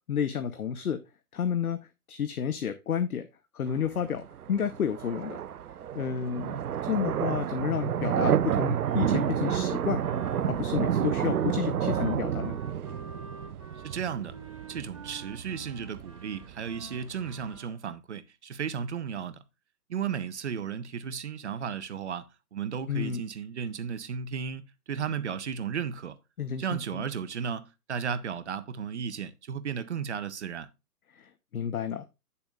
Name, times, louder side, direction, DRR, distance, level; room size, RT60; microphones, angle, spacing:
voice 1, 0.1-1.0 1.3-1.8 2.1-3.3 3.5-5.4 5.9-6.6 6.8-10.0 10.5-12.6 22.9-23.2 26.4-27.0 31.2-32.0, left 8 dB, 65° left, 1.0 m, -31 dB
sound 1, 3.7-17.6, right 9 dB, 70° right, 0.6 m, -30 dB
Wind instrument woodwind instrument, 8.8-17.8, right 2 dB, 20° right, 0.4 m, -48 dB
voice 2, 13.8-14.4 14.7-19.4 19.9-22.3 22.5-24.6 24.9-26.2 26.6-30.7, right 7 dB, 45° right, 0.8 m, -34 dB
9.9 x 7.0 x 2.4 m
hypercardioid pair, 145°, 47 cm